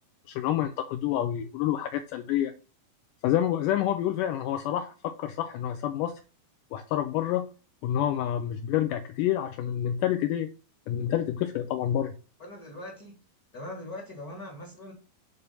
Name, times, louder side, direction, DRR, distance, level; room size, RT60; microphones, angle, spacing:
voice 1, 0.3-2.5 3.2-6.2 6.7-7.5 7.8-10.5 10.9-12.1, left 11 dB, 85° left, 1.9 m, -28 dB
voice 2, 12.4-13.2 13.5-14.9, left 1 dB, 50° left, 1.0 m, -41 dB
8.0 x 3.5 x 5.4 m
omnidirectional pair, 4.2 m